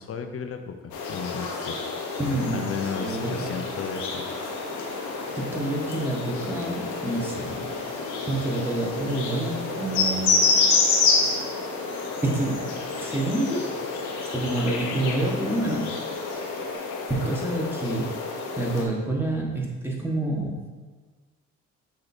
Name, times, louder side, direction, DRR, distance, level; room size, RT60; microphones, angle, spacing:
voice 1, 0.0-1.8 2.5-4.3, left 6 dB, 50° left, 6 dB, 0.7 m, -34 dB
sound 1, 0.9-18.9, left 4 dB, 85° left, 1.1 m, -28 dB
voice 2, 2.2-2.7 3.0-3.4 5.3-7.7 8.3-10.4 11.0-11.2 12.2-13.7 14.3-16.0 17.1-18.1 18.6-20.6, right 2 dB, 5° right, -2 dB, 1.5 m, -28 dB
sound 2, 2.2-16.8, right 3 dB, 55° right, 1.3 m, -46 dB
7.9 x 3.1 x 4.3 m, 1.4 s
cardioid pair, 90°, 30 cm